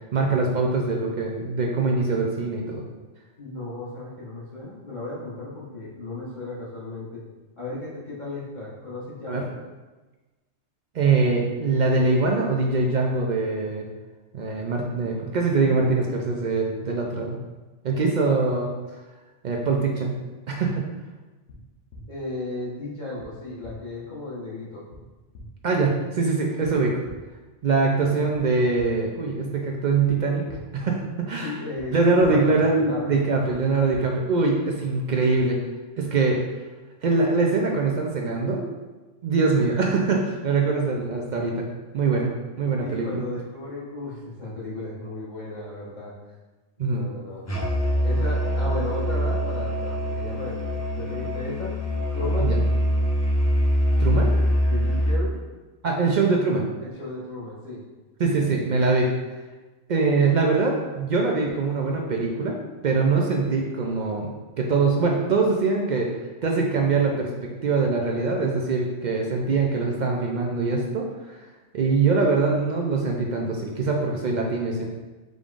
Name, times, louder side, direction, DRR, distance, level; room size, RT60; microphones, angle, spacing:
voice 1, 0.1-2.8 9.3-9.4 10.9-13.9 14.3-17.4 17.8-18.7 19.4-20.2 20.5-20.9 25.6-27.0 27.6-30.4 30.7-31.6 31.9-35.6 36.0-36.4 37.0-38.6 39.2-41.7 41.9-42.3 42.6-43.2 46.8-47.0 52.4-52.6 54.0-54.3 55.8-56.7 58.2-59.1 59.9-62.6 62.8-66.1 66.4-71.1 71.3-71.4 71.7-74.9, right 3 dB, 60° right, 0 dB, 0.5 m, -23 dB
voice 2, 3.4-7.2 7.6-9.5 22.1-24.8 31.4-31.9 32.2-32.6 32.9-33.4 42.8-46.1 46.9-47.4 48.0-51.7 52.1-52.5 54.6-55.3 56.8-57.8, left 2 dB, 40° left, -8 dB, 1.2 m, -35 dB
sound 1, 21.5-21.6 21.9-22.0 23.2-23.3 23.6-23.7 24.9-25.0 25.3-25.4 26.6-26.7 27.0-27.1 28.3-28.4 28.8-28.9 30.1-30.2 30.5-30.6 31.8-31.9 32.2-32.3 33.5-33.6 33.9-34.0, left 3 dB, 70° left, 1.1 m, -44 dB
Musical instrument, 47.5-55.3, equal, 20° left, 0.5 m, -23 dB
5.1 x 3.5 x 2.4 m, 1.2 s
omnidirectional pair, 1.2 m